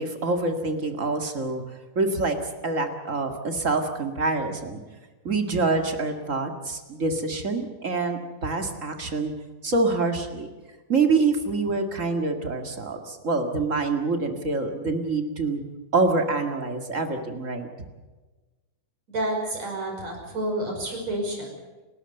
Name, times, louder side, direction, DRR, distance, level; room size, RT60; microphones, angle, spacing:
voice 1, 0.0-1.6 1.9-2.4 2.6-4.8 5.2-9.3 9.6-10.5 10.9-15.6 15.9-17.7, right 3 dB, 30° right, 5 dB, 1.5 m, -26 dB
voice 2, 19.1-21.6, right 1 dB, 50° right, 1 dB, 6.7 m, -29 dB
30.0 x 13.0 x 7.9 m, 1.2 s
omnidirectional pair, 4.1 m